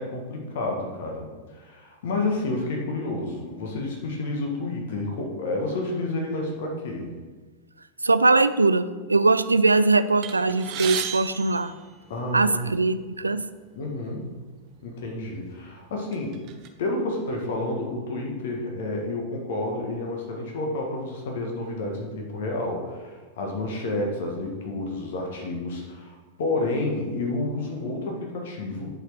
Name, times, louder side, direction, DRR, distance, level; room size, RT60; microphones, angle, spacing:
voice 1, 0.0-7.1 12.1-12.5 13.8-14.4 14.8-16.4 16.8-29.0, left 2 dB, 55° left, 1 dB, 1.5 m, -30 dB
voice 2, 8.0-11.7 12.3-13.5, right 3 dB, 80° right, 13 dB, 0.4 m, -21 dB
sound 1, 10.2-12.6 13.4-13.5 13.8-14.0 14.9-15.0 15.5-16.7, right 9 dB, 40° right, 0.9 m, -35 dB
10.5 x 4.8 x 4.8 m, 1.4 s
figure-of-eight pair, 90°, 0 cm